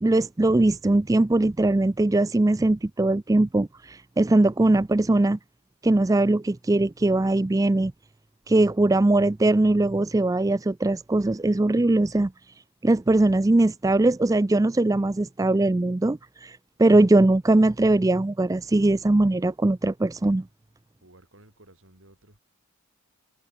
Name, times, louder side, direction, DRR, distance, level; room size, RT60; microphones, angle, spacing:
voice 1, 0.0-5.4 5.8-7.9 8.5-12.3 12.8-20.4, right 2 dB, 15° right, 0.3 m, -21 dB
voice 2, 21.0-22.4, right 1 dB, 60° right, 6.2 m, -54 dB
head